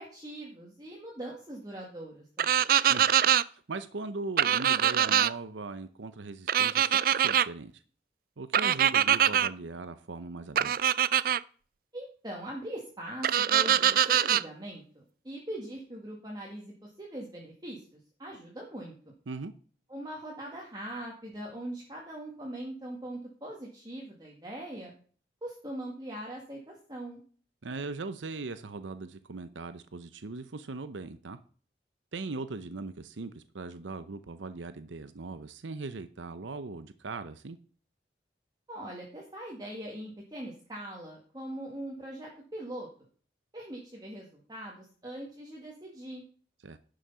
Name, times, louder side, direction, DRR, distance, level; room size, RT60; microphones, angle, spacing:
voice 1, 0.0-2.6 11.9-18.9 19.9-24.9 25.4-27.2 38.7-42.9 43.5-46.2, right 1 dB, 20° right, -2 dB, 1.9 m, -41 dB
sound 1, 2.4-3.4 4.4-5.3 6.5-7.5 8.5-9.5 10.6-11.4 13.2-14.4, right 10 dB, 50° right, 0.4 m, -23 dB
voice 2, 3.5-7.8 8.4-10.8 19.3-19.5 27.6-31.4 32.1-37.6 46.6-46.8, right 3 dB, 85° right, 12 dB, 0.7 m, -39 dB
11.5 x 6.5 x 5.6 m, 0.43 s
head